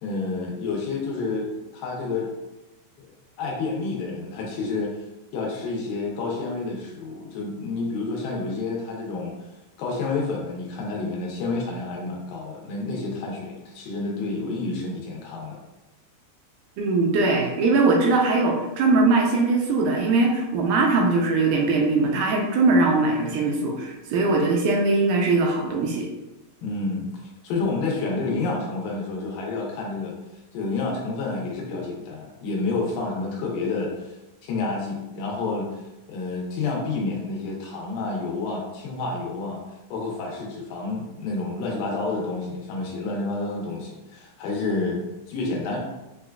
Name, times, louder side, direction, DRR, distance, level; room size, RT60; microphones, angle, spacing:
voice 1, 0.0-2.3 3.0-3.1 3.4-5.0 5.3-9.4 9.8-15.6 26.6-30.1 30.5-34.1 34.4-35.7 36.1-39.6 39.9-45.8, left 3 dB, 90° left, -1 dB, 2.6 m, -29 dB
voice 2, 16.8-26.1, right 3 dB, 80° right, 0 dB, 2.1 m, -21 dB
6.6 x 2.2 x 2.3 m, 0.99 s
omnidirectional pair, 3.9 m